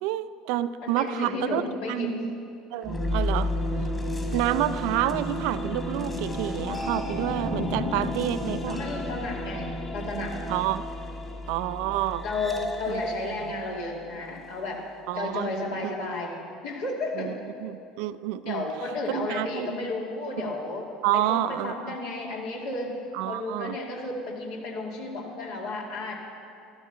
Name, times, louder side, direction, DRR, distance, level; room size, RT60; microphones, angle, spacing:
voice 1, 0.0-1.6 1.9-2.4 2.7-3.9 4.3-8.8 10.5-10.8 11.5-12.2 12.9-13.0 13.4-13.5 15.1-15.5 15.8-15.9 17.2-18.6 19.1-19.8 20.4-20.5 21.0-22.0 23.1-23.8, right 13 dB, 65° right, 14 dB, 0.4 m, -29 dB
voice 2, 0.8-2.3 8.7-10.4 12.2-14.8 15.1-16.4 16.6-17.3 18.5-20.9 21.1-22.9 23.2-26.1, left 2 dB, 65° left, -2 dB, 2.5 m, -32 dB
sound 1, 2.8-14.7, left 1 dB, 20° left, 2.2 m, -32 dB
13.0 x 13.0 x 5.7 m, 2.6 s
figure-of-eight pair, 70°, 0 cm